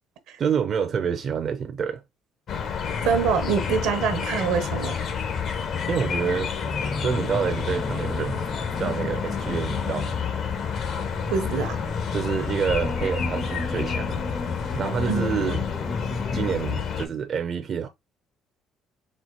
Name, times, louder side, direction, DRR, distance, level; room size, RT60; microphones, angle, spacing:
voice 1, 0.4-2.0 5.9-6.5 7.0-8.5 8.8-10.1 12.1-14.2 14.7-15.7 16.3-17.9, right 7 dB, 45° right, 0.5 m, -27 dB
sound 1, 2.5-17.1, left 6 dB, 60° left, 1.0 m, -29 dB
voice 2, 3.0-4.9 11.3-11.8 15.1-15.3, right 6 dB, 80° right, 0.9 m, -24 dB
sound 2, 6.6-16.6, left 3 dB, 15° left, 0.5 m, -34 dB
4.3 x 2.1 x 4.4 m
cardioid pair, 90°, 0 cm